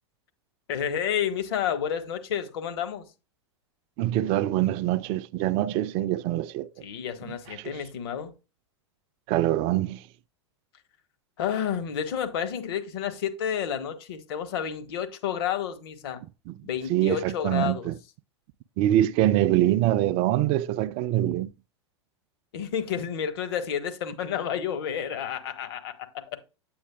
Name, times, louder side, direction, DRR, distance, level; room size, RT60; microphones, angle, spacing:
voice 1, 0.7-3.0 6.8-8.3 11.4-16.2 16.6-17.9 22.5-26.4, left 8 dB, 60° left, 1.3 m, -30 dB
voice 2, 4.0-6.7 7.3-7.7 9.3-10.0 16.5-16.6 16.9-17.9 18.8-21.5, right 13 dB, 40° right, 0.4 m, -24 dB
8.5 x 8.2 x 2.3 m
figure-of-eight pair, 95°, 15 cm